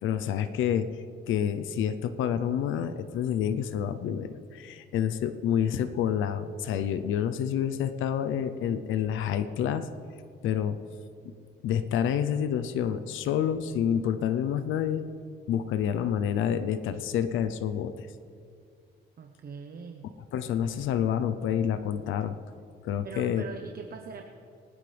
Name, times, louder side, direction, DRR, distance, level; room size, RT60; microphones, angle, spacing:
voice 1, 0.0-9.9 10.4-10.8 11.2-11.3 11.6-15.0 15.5-18.1 20.3-22.4 22.8-23.4, left 9 dB, 85° left, 10 dB, 0.7 m, -28 dB
voice 2, 19.2-20.1 23.0-24.2, right 6 dB, 50° right, 4 dB, 1.0 m, -42 dB
24.5 x 9.8 x 3.4 m, 2.3 s
cardioid pair, 90°, 20 cm